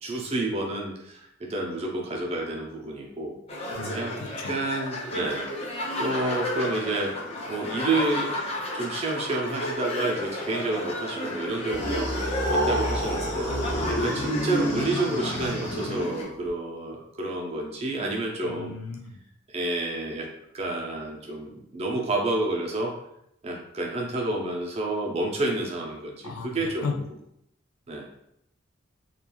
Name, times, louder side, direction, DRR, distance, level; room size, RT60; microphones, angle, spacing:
voice 1, 0.0-3.4 3.9-4.2 4.5-5.5 6.0-7.1 7.5-8.3 8.7-12.1 12.5-13.5 13.9-18.8 19.5-20.3 20.5-22.9 23.4-26.9 27.9-28.0, right 2 dB, 30° right, -1 dB, 0.5 m, -29 dB
sound 1, 3.5-16.2, left 1 dB, 30° left, 0.5 m, -33 dB
voice 2, 3.7-4.5 18.4-19.2 26.2-27.1, left 4 dB, 90° left, 3 dB, 0.4 m, -35 dB
sound 2, 11.7-16.5, equal, 50° left, 0.9 m, -28 dB
3.0 x 2.3 x 2.3 m, 0.76 s
head